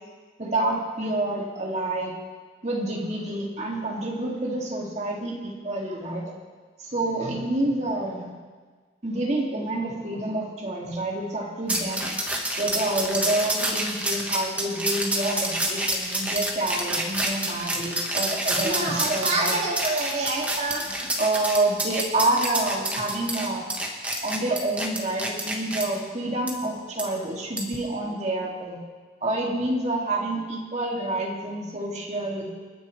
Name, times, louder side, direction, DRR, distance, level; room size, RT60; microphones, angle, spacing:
voice 1, 0.4-2.1 2.6-6.2 6.8-8.3 9.0-12.3 12.6-23.6 24.2-28.8 29.2-32.5, right 2 dB, 35° right, -2 dB, 2.3 m, -28 dB
sound 1, 11.7-25.8 26.5-26.6 27.0-27.1 27.6-27.8, right 1 dB, 5° right, 1.4 m, -28 dB
28.0 x 10.0 x 3.3 m, 1.5 s
head